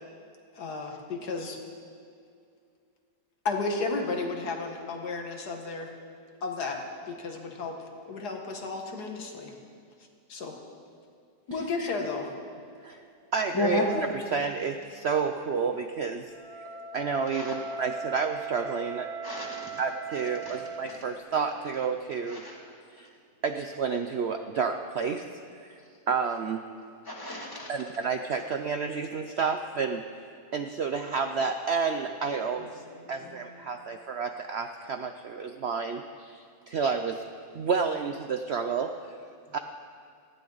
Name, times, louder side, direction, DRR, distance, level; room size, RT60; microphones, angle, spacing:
voice 1, 0.5-1.6 3.5-5.9 6.4-9.5 10.3-10.6 11.5-12.3, left 3 dB, 80° left, 3 dB, 2.0 m, -33 dB
voice 2, 13.3-16.6 16.9-19.1 19.8-22.4 23.0-23.1 23.4-25.3 26.1-26.7 27.7-30.0 30.5-32.8 33.1-37.2 37.5-39.1 39.5-39.6, right 5 dB, 60° right, 6 dB, 0.7 m, -30 dB
Wind instrument woodwind instrument, 16.2-20.8, right 4 dB, 20° right, 3.1 m, -39 dB
voice 3, 19.2-19.7 20.5-20.6 20.9-21.0 22.3-22.6 27.1-27.7 33.2-33.4, left 2 dB, 15° left, -2 dB, 2.2 m, -32 dB
18.5 x 15.0 x 4.0 m, 2.3 s
omnidirectional pair, 1.7 m